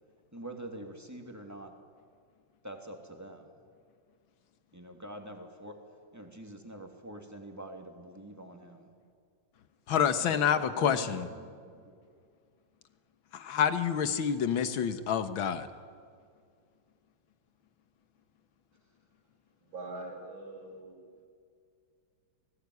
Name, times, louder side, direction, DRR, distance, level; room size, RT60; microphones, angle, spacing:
voice 1, 0.3-1.7 2.6-3.5 4.7-5.8 6.1-8.9 10.2-12.0, right 1 dB, 10° right, 3 dB, 2.8 m, -45 dB
voice 2, 9.9-11.3 13.3-15.7, left 8 dB, 85° left, 10 dB, 2.1 m, -28 dB
voice 3, 19.6-21.0, right 2 dB, 80° right, -2 dB, 8.3 m, -43 dB
29.0 x 19.5 x 9.7 m, 2.2 s
omnidirectional pair, 2.1 m